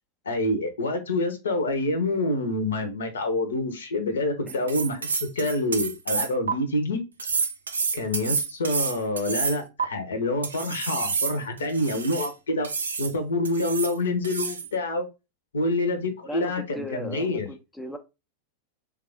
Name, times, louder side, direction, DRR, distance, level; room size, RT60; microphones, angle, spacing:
voice 1, 0.3-7.0 7.9-12.7 13.0-15.1 15.5-17.5, left 2 dB, 70° left, 0.7 m, -27 dB
sound 1, 4.5-6.5 7.2-9.8 10.4-12.3 12.6-13.1 13.4-14.0 14.2-14.7, right 5 dB, 70° right, 0.4 m, -29 dB
voice 2, 16.2-18.0, equal, 5° left, 0.4 m, -37 dB
3.3 x 2.4 x 3.4 m
figure-of-eight pair, 90°, 0 cm